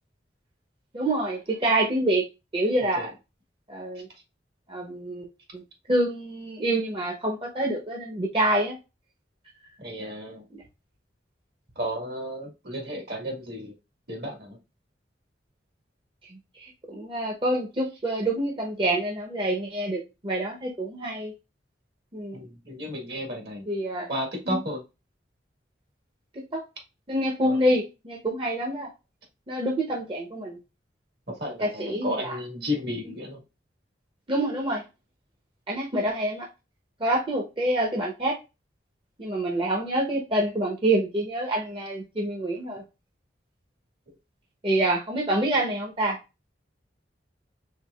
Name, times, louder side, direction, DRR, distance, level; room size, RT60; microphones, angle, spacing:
voice 1, 0.9-2.2 2.5-3.1 3.7-4.1 4.7-5.3 5.5-5.6 5.9-8.8 10.5-10.6 16.2-21.3 22.1-22.4 23.7-24.1 24.5-24.6 26.5-26.6 27.1-28.9 29.5-30.6 31.6-32.4 34.3-34.8 35.7-36.5 37.0-38.4 39.2-42.8 44.6-46.2, right 1 dB, 30° right, -2 dB, 0.8 m, -27 dB
voice 2, 9.8-10.5 11.8-13.8 14.1-14.6 18.1-18.2 22.3-23.7 24.1-24.8 27.4-27.6 31.3-33.4, equal, 60° right, 1 dB, 1.8 m, -33 dB
4.6 x 3.6 x 2.3 m, 0.26 s
head